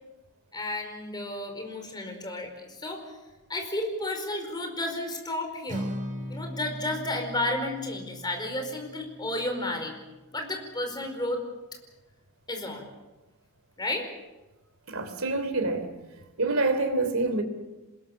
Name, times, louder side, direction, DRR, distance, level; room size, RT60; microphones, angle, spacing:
voice 1, 0.5-3.0 3.5-5.9 6.3-9.9 10.3-11.4 12.5-12.9 13.8-14.1, left 1 dB, 20° left, 4.9 m, -32 dB
Acoustic guitar, 5.7-9.9, equal, 35° right, 4.6 m, -39 dB
voice 2, 14.9-15.9 16.4-17.4, right 2 dB, 65° right, 3.3 m, -26 dB
27.0 x 21.0 x 7.3 m
head